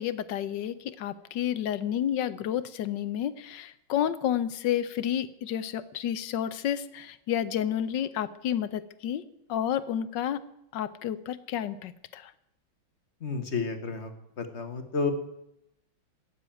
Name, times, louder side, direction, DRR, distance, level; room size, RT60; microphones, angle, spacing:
voice 1, 0.0-9.2 9.5-10.4 10.7-12.2, left 10 dB, 70° left, 15 dB, 1.4 m, -30 dB
voice 2, 13.2-15.1, left 4 dB, 35° left, 8 dB, 1.7 m, -31 dB
17.5 x 7.5 x 9.1 m, 0.81 s
omnidirectional pair, 2.1 m